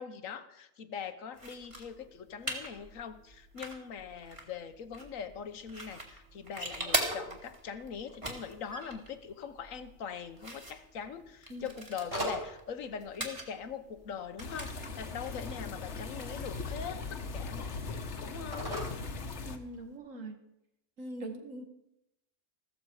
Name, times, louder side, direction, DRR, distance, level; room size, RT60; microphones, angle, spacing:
voice 1, 0.0-18.8, left 7 dB, 85° left, 10 dB, 1.4 m, -42 dB
sound 1, 1.3-16.5, right 1 dB, 25° right, 2.3 m, -42 dB
Telephone, 5.5-20.0, equal, 45° right, 5.7 m, -46 dB
sound 2, 14.4-19.6, left 4 dB, 60° left, 1.4 m, -39 dB
voice 2, 19.4-20.4 21.0-21.7, right 1 dB, 80° right, 4 dB, 2.3 m, -42 dB
15.0 x 14.0 x 4.8 m, 0.84 s
omnidirectional pair, 1.3 m